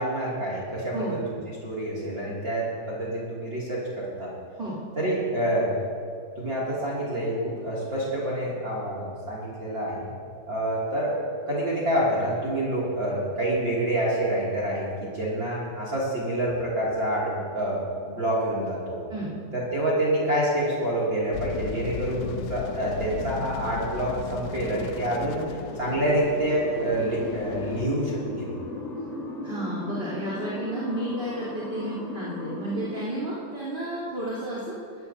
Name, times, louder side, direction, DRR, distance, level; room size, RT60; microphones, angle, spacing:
voice 1, 0.0-4.3 5.0-5.7 6.4-10.1 10.5-11.2 11.5-19.0 19.5-28.5, right 1 dB, 30° right, -6 dB, 2.8 m, -27 dB
sound 1, 21.3-27.9, left 9 dB, 90° left, 2.7 m, -37 dB
sound 2, 25.4-33.0, left 2 dB, 65° left, 0.7 m, -36 dB
voice 2, 29.4-34.8, right 1 dB, 15° right, -8 dB, 3.1 m, -32 dB
22.0 x 16.5 x 2.8 m, 2.4 s
omnidirectional pair, 4.6 m